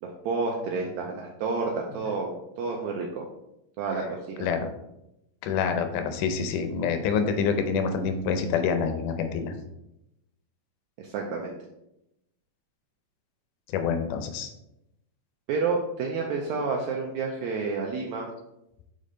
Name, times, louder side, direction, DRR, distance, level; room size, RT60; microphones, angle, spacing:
voice 1, 0.0-3.2 3.8-4.6 11.0-11.6 15.5-18.3, right 4 dB, 80° right, 0 dB, 1.7 m, -30 dB
voice 2, 5.4-9.5 13.7-14.5, left 6 dB, 80° left, 7 dB, 2.1 m, -27 dB
5.4 x 5.0 x 3.8 m, 0.87 s
omnidirectional pair, 3.8 m